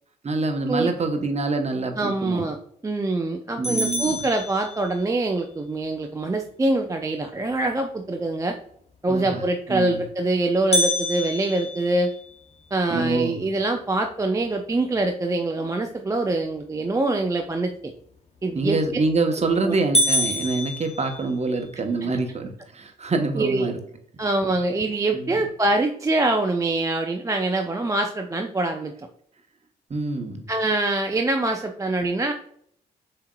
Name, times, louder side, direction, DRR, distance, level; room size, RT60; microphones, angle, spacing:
voice 1, 0.2-2.5 3.6-4.2 9.1-9.4 9.7-10.0 12.9-13.4 18.5-23.8 25.1-25.4 29.9-30.4, right 3 dB, 30° right, 5 dB, 1.0 m, -26 dB
voice 2, 2.0-2.6 2.8-8.6 9.0-12.1 12.7-17.7 18.4-18.8 19.6-19.8 23.4-23.7 24.2-28.9 30.5-32.3, right 2 dB, 15° right, 4 dB, 0.4 m, -24 dB
sound 1, 3.6-5.2 10.7-12.9 13.4-13.5 14.0-14.1 14.7-15.1 18.7-19.1 19.5-19.6 19.9-21.7, equal, 30° left, 0.9 m, -26 dB
7.0 x 2.8 x 2.3 m, 0.67 s
hypercardioid pair, 40°, 21 cm